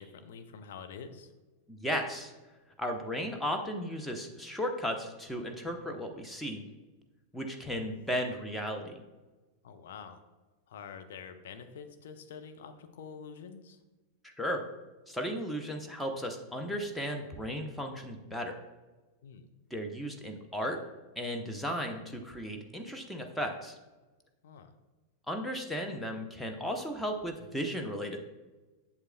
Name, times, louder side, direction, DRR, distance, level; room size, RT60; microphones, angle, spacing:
voice 1, 0.0-1.3 9.6-10.2 10.7-13.8 19.2-19.5 24.4-24.7, left 6 dB, 60° left, 7 dB, 0.6 m, -47 dB
voice 2, 1.7-2.3 2.8-6.6 7.3-9.0 14.2-14.6 15.1-18.5 19.7-20.8 21.2-23.8 25.3-28.2, equal, 5° left, 2 dB, 0.8 m, -35 dB
8.0 x 6.9 x 2.2 m, 1.2 s
figure-of-eight pair, 90°, 0 cm